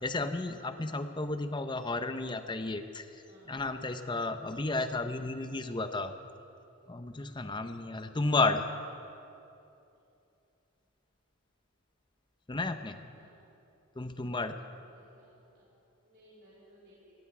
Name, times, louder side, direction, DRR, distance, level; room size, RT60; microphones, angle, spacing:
voice 1, 0.0-3.1 3.5-6.1 6.9-8.6 12.5-13.0 14.0-14.6, left 3 dB, 20° left, 9 dB, 0.6 m, -32 dB
voice 2, 3.3-3.6 13.2-13.4 13.9-14.3 14.6-15.6 16.0-17.1, equal, 50° right, -10 dB, 3.6 m, -61 dB
17.5 x 15.5 x 4.8 m, 2.8 s
head